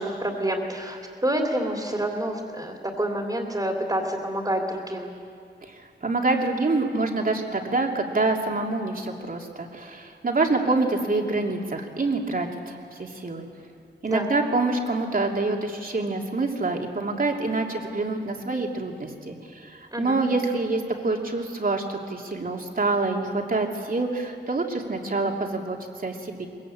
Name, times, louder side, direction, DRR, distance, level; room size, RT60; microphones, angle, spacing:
voice 1, 0.0-5.1 14.0-14.3 19.9-20.2, right 1 dB, 20° right, 1 dB, 3.1 m, -28 dB
voice 2, 5.6-13.5 14.0-26.5, right 3 dB, 50° right, 1 dB, 2.9 m, -26 dB
22.5 x 21.5 x 8.8 m, 2.4 s
wide cardioid pair, 85°, 19 cm